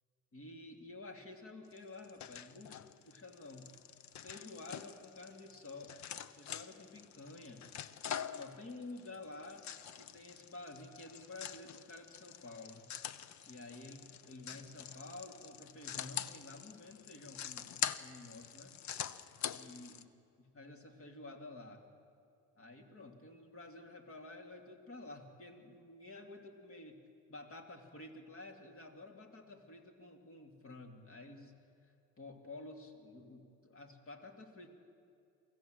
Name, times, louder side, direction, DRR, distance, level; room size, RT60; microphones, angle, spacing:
voice 1, 0.3-3.7 4.2-6.0 6.4-7.7 8.3-9.7 10.0-12.9 13.5-18.8 19.4-20.1 20.4-21.8 22.6-27.0 27.3-34.7, left 2 dB, 45° left, 4 dB, 2.6 m, -51 dB
sound 1, 1.7-20.0, left 9 dB, 65° left, 0.8 m, -45 dB
24.0 x 15.0 x 7.8 m, 2.5 s
cardioid pair, 90°, 30 cm